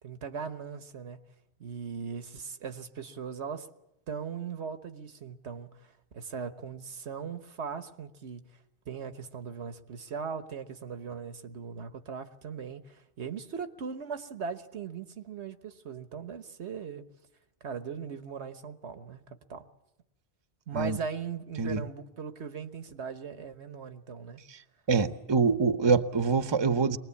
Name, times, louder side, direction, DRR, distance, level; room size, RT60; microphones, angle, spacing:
voice 1, 0.0-1.2 1.6-3.7 4.1-8.4 8.9-17.1 17.6-19.7 20.7-24.4, right 6 dB, 90° right, 1.4 m, -39 dB
voice 2, 24.9-27.0, right 4 dB, 25° right, 0.8 m, -25 dB
23.5 x 20.0 x 8.5 m
omnidirectional pair, 1.1 m